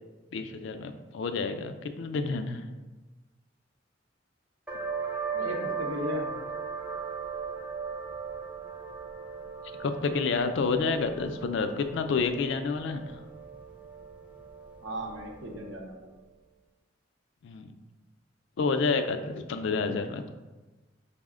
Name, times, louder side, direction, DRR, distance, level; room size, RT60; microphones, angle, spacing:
voice 1, 0.3-2.6 9.8-13.2 17.4-17.7 18.6-20.3, left 4 dB, 65° left, 8 dB, 0.3 m, -29 dB
sound 1, 4.7-16.0, right 5 dB, 5° right, 0.4 m, -38 dB
voice 2, 5.3-6.3 14.8-16.0, left 1 dB, 90° right, 1 dB, 0.7 m, -36 dB
5.5 x 2.1 x 3.6 m, 1.2 s
head